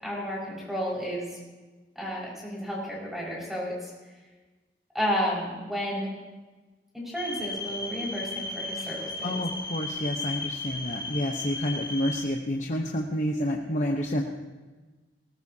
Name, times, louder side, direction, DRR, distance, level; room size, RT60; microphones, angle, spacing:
voice 1, 0.0-1.4 2.0-3.9 4.9-6.1 6.9-9.4, equal, ahead, -5 dB, 5.4 m, -32 dB
sound 1, 7.2-12.2, left 2 dB, 25° left, 3.3 m, -35 dB
voice 2, 8.9-14.2, left 1 dB, 45° left, 0 dB, 1.0 m, -29 dB
19.0 x 19.0 x 2.8 m, 1.3 s
head